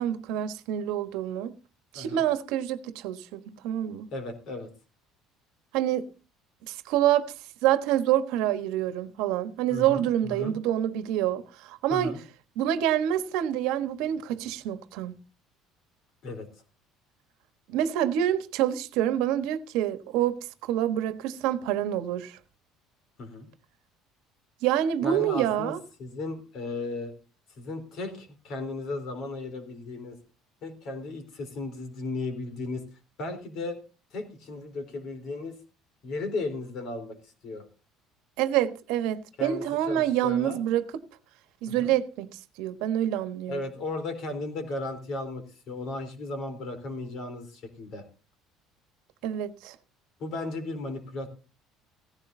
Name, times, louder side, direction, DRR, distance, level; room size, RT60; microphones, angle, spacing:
voice 1, 0.0-1.5 1.9-4.1 5.7-6.1 6.7-7.3 7.6-12.2 12.6-15.1 17.7-22.4 24.6-25.8 38.4-40.9 41.6-43.6 49.2-49.7, right 11 dB, 80° right, 1.2 m, -27 dB
voice 2, 4.1-4.7 9.7-10.5 11.9-12.2 16.2-16.5 23.2-23.5 25.0-25.7 26.0-27.1 27.6-30.2 30.6-32.8 33.2-33.8 34.1-35.6 36.0-37.2 37.4-37.6 39.4-40.6 41.7-41.9 43.5-48.0 50.2-51.3, left 2 dB, 50° left, 3.7 m, -35 dB
16.5 x 15.0 x 2.7 m
cardioid pair, 165°, 0 cm